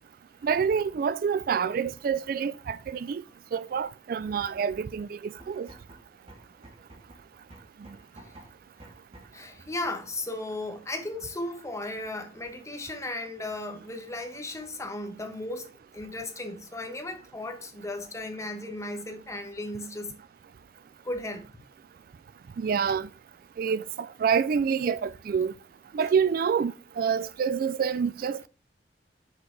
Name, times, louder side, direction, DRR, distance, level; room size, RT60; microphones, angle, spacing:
voice 1, 0.4-3.2 3.5-5.7 22.6-23.1 23.6-25.5 25.9-28.5, right 6 dB, 55° right, 0.3 m, -27 dB
sound 1, 5.3-9.5, right 1 dB, 35° right, 1.9 m, -51 dB
voice 2, 9.3-20.1 21.0-21.5 26.0-26.1, left 2 dB, 15° left, 1.3 m, -36 dB
6.5 x 4.6 x 4.6 m
head